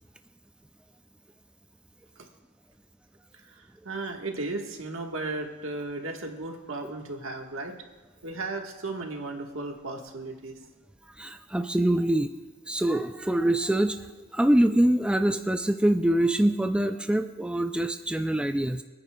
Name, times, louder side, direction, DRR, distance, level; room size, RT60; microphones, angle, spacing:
voice 1, 3.3-7.7 8.2-10.6, right 2 dB, 75° right, 2 dB, 1.4 m, -35 dB
voice 2, 11.2-12.3 12.7-18.8, right 1 dB, 5° right, 7 dB, 0.3 m, -24 dB
27.0 x 9.6 x 2.3 m, 1.2 s
head